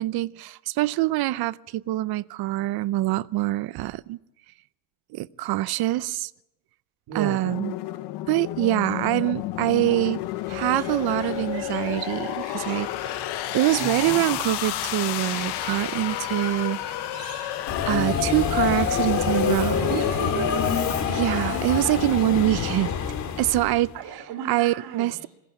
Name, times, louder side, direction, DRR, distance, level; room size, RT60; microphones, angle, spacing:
voice 1, 0.0-4.2 5.1-6.3 7.1-7.7 8.3-10.2 10.5-12.9 13.5-16.8 17.9-19.9 21.1-22.9 23.4-23.9 24.4-25.3, right 16 dB, 65° right, 0.7 m, -24 dB
voice 2, 7.1-7.5 13.8-14.4 19.9-20.8 23.9-25.3, right 7 dB, 85° right, 2.6 m, -34 dB
sound 1, 7.4-18.0, left 15 dB, 85° left, 1.1 m, -31 dB
sound 2, 10.5-22.2, right 6 dB, 40° right, 3.1 m, -45 dB
Subway metro underground, 17.7-23.9, left 7 dB, 45° left, 2.1 m, -25 dB
21.0 x 17.0 x 9.0 m
cardioid pair, 175°, 39 cm